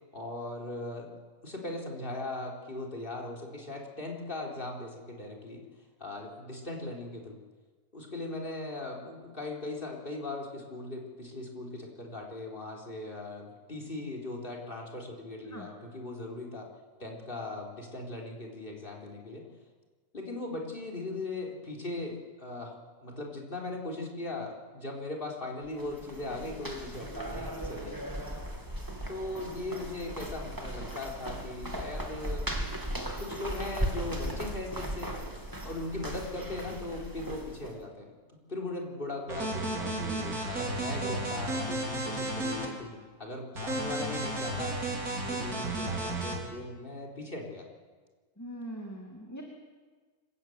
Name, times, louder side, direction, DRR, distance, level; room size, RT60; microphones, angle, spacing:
voice 1, 0.1-1.2 1.4-5.6 6.0-7.4 7.9-16.7 17.0-19.5 20.1-22.8 23.0-28.1 29.1-32.5 33.2-35.2 35.6-38.1 38.5-44.7 45.2-47.7, left 2 dB, 35° left, -1 dB, 4.1 m, -39 dB
sound 1, 25.7-37.8, right 1 dB, 15° right, 2.5 m, -37 dB
sound 2, 39.3-42.7 43.5-46.4, right 2 dB, 90° right, 4.6 m, -33 dB
voice 2, 48.4-49.4, equal, 10° left, 0 dB, 2.5 m, -41 dB
25.0 x 15.0 x 9.2 m, 1.4 s
omnidirectional pair, 1.5 m